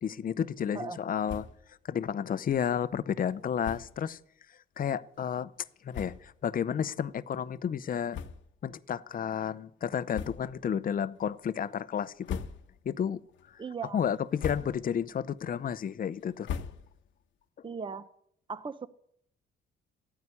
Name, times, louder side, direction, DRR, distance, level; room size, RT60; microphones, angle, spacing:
voice 1, 0.0-1.5 1.9-4.2 4.8-5.5 5.8-8.2 8.6-12.4 12.9-13.2 13.9-16.5, left 8 dB, 45° left, 0.7 m, -31 dB
sound 1, 1.2-1.7 2.1-2.2 2.4-2.6 3.6-4.0 4.8-4.9 5.6-5.7 5.9-6.4 7.0-7.1 8.1-8.7 9.1-9.3 10.1-10.7 11.1-11.6 12.0-12.9 13.3-13.7 14.2-15.0 15.4-17.2, left 7 dB, 75° left, 1.1 m, -41 dB
voice 2, 13.6-14.0 17.6-18.1 18.5-18.9, right 5 dB, 25° right, 0.8 m, -37 dB
14.0 x 9.5 x 9.8 m
cardioid pair, 90°, 20 cm